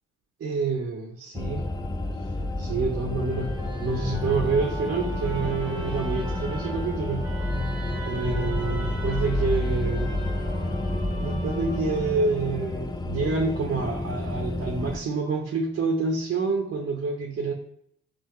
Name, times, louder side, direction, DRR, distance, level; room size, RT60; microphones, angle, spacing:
voice 1, 0.4-1.7 2.6-3.5 3.8-7.3 8.1-10.1 11.2-17.5, right 4 dB, 45° right, 1 dB, 0.8 m, -28 dB
sound 1, 1.3-15.0, left 2 dB, 15° left, 0.4 m, -30 dB
Musical instrument, 3.0-12.3, equal, 15° right, 1.0 m, -38 dB
5.6 x 2.1 x 3.0 m, 0.71 s
cardioid pair, 90°, 30 cm